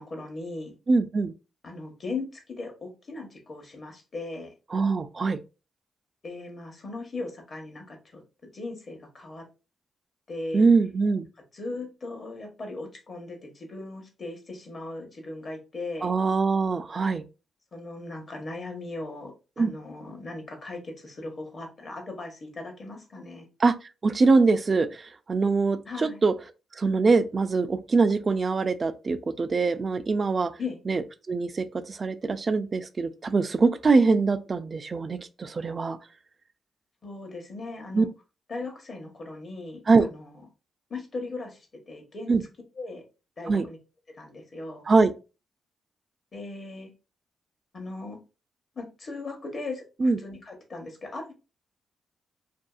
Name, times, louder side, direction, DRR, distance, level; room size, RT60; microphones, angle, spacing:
voice 1, 0.0-0.7 1.6-4.5 6.2-8.2 8.5-9.4 10.3-10.6 11.5-16.1 17.7-23.5 25.8-26.2 30.6-30.8 37.0-38.1 38.5-40.4 40.9-42.3 42.8-43.0 43.4-43.8 44.1-44.8 46.3-46.9 47.7-48.2 48.8-51.3, left 3 dB, 50° left, 0.9 m, -38 dB
voice 2, 0.9-1.3 4.7-5.4 10.5-11.3 16.0-17.2 19.6-19.7 23.6-23.7 24.0-25.0 25.3-26.3 26.8-30.5 30.9-31.0 31.3-36.0 37.9-38.1 39.9-40.1 42.3-42.4 43.5-43.6 44.9-45.1 50.0-50.2, right 4 dB, 40° right, 0.3 m, -23 dB
2.6 x 2.3 x 2.3 m
cardioid pair, 65°, 0 cm